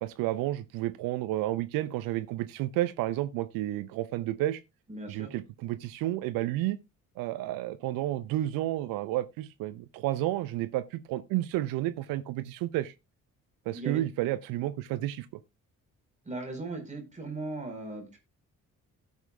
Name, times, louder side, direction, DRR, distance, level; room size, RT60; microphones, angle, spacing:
voice 1, 0.0-4.6 5.1-6.8 7.2-12.9 13.7-15.3, right 15 dB, 55° right, 0.6 m, -31 dB
voice 2, 4.9-5.3 13.7-14.0 16.2-18.2, right 2 dB, 15° right, 4.2 m, -38 dB
17.5 x 5.9 x 2.2 m
figure-of-eight pair, 45°, 42 cm